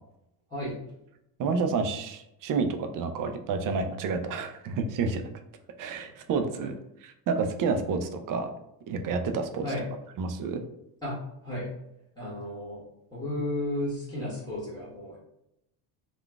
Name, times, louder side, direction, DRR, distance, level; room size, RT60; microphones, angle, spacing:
voice 1, 1.4-5.2 5.8-6.7 7.3-8.5 8.9-9.6 10.2-10.6, right 4 dB, 45° right, 7 dB, 0.4 m, -29 dB
voice 2, 12.2-12.8 13.1-15.2, left 1 dB, 10° left, -8 dB, 1.2 m, -33 dB
3.7 x 2.4 x 2.3 m, 0.81 s
cardioid pair, 120°, 45 cm